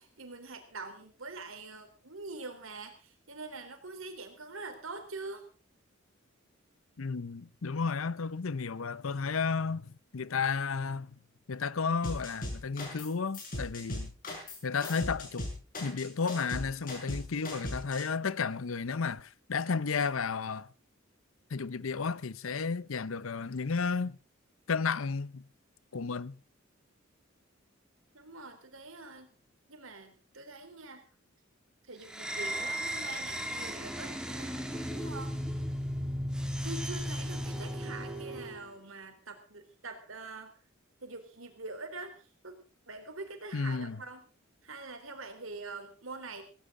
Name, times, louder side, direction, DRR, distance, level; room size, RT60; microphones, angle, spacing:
voice 1, 0.0-5.4 28.1-29.3 29.7-31.0 31.9-35.3 36.6-40.5 41.0-44.2 44.6-46.4, right 3 dB, 75° right, 3.8 m, -44 dB
voice 2, 7.0-11.1 11.5-14.1 14.6-15.5 15.8-20.7 21.5-24.2 24.7-25.4 25.9-26.4 43.5-44.0, left 5 dB, 80° left, 0.7 m, -33 dB
sound 1, 12.0-13.1 13.3-18.0, left 1 dB, 45° left, 7.2 m, -38 dB
sound 2, 32.0-38.7, equal, 5° right, 2.6 m, -35 dB
18.5 x 17.0 x 3.8 m
head